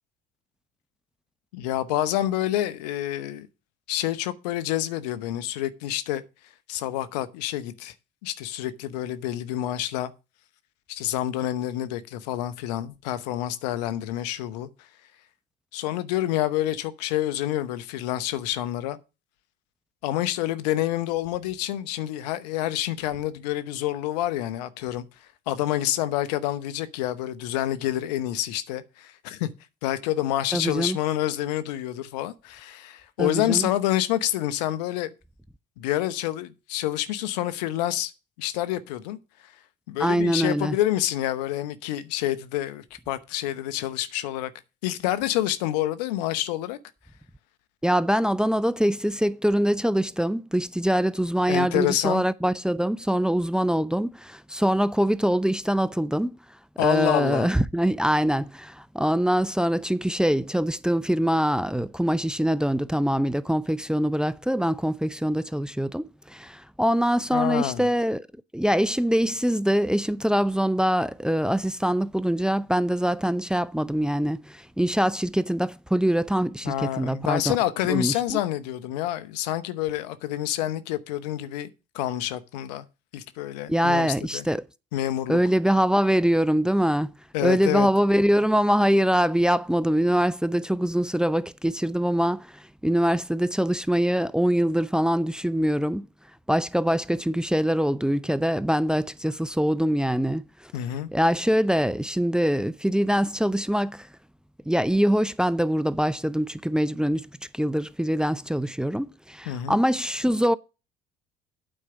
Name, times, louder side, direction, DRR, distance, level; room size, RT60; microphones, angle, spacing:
voice 1, 1.5-3.5 3.9-6.2 6.7-7.9 8.2-10.1 10.9-14.7 15.7-19.0 20.0-25.0 25.5-29.5 29.8-35.1 35.8-38.1 38.4-39.2 39.4-39.5 39.9-44.5 44.8-46.8 51.5-52.2 56.8-57.5 67.3-67.9 76.6-81.7 81.9-82.8 83.1-84.4 84.9-85.4 87.3-87.9 100.7-101.1 109.5-109.8, left 13 dB, 80° left, 0.9 m, -28 dB
voice 2, 30.5-31.0 33.2-33.7 40.0-40.8 47.8-56.4 56.8-68.3 68.5-77.4 77.9-78.4 83.7-84.7 85.3-87.1 87.4-96.1 96.5-100.5 101.1-104.1 104.7-107.3 107.5-110.6, equal, 5° right, 0.5 m, -23 dB
9.0 x 4.8 x 6.9 m
hypercardioid pair, 65°, 21 cm